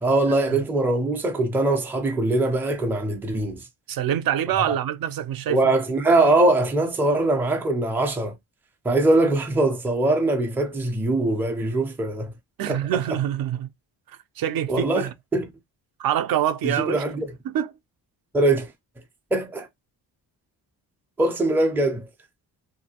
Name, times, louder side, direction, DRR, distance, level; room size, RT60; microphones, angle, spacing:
voice 1, 0.0-3.6 5.5-8.4 8.8-12.3 12.7-13.0 14.7-15.4 16.6-17.3 18.3-18.7 19.3-19.7 21.2-22.1, right 2 dB, 5° right, 0.4 m, -22 dB
voice 2, 3.9-5.7 12.6-13.7 14.1-15.1 16.0-17.0 17.5-17.7, right 10 dB, 60° right, 0.5 m, -25 dB
3.0 x 2.7 x 2.8 m
cardioid pair, 160°, 41 cm